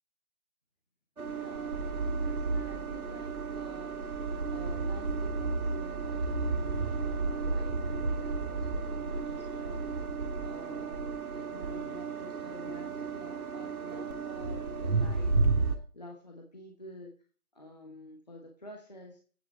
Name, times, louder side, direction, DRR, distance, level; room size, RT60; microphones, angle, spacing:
sound 1, 1.2-15.8, right 3 dB, 75° right, 2.1 m, -32 dB
voice 1, 1.3-10.0 10.4-17.1 17.5-19.2, left 1 dB, 30° left, 1 dB, 1.2 m, -49 dB
9.1 x 7.8 x 4.1 m, 0.41 s
hypercardioid pair, 180°, 44 cm